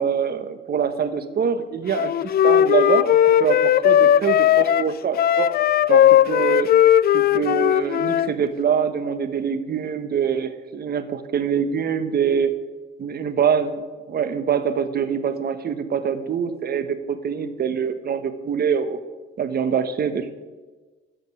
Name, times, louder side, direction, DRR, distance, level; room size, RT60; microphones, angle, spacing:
voice 1, 0.0-2.1 2.4-3.1 3.4-5.5 5.9-6.7 7.1-12.5 13.0-19.0 19.4-20.3, right 7 dB, 50° right, 11 dB, 1.1 m, -24 dB
Wind instrument woodwind instrument, 1.9-8.3, left 10 dB, 50° left, 0.4 m, -17 dB
13.5 x 5.2 x 8.6 m, 1.3 s
cardioid pair, 90°, 20 cm